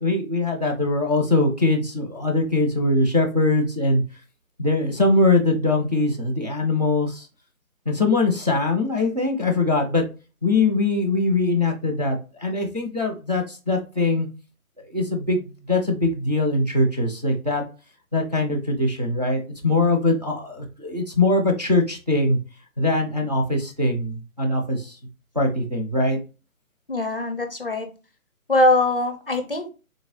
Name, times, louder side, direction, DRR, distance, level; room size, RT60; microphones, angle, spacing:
voice 1, 0.0-4.0 4.6-7.3 7.9-10.0 10.4-14.3 14.8-17.6 18.1-22.4 22.8-25.0 25.4-26.2, left 2 dB, 30° right, 0 dB, 0.4 m, -22 dB
voice 2, 26.9-27.9 28.5-29.7, left 2 dB, 45° left, 7 dB, 0.5 m, -21 dB
3.7 x 2.1 x 3.0 m, 0.32 s
hypercardioid pair, 170°, 42 cm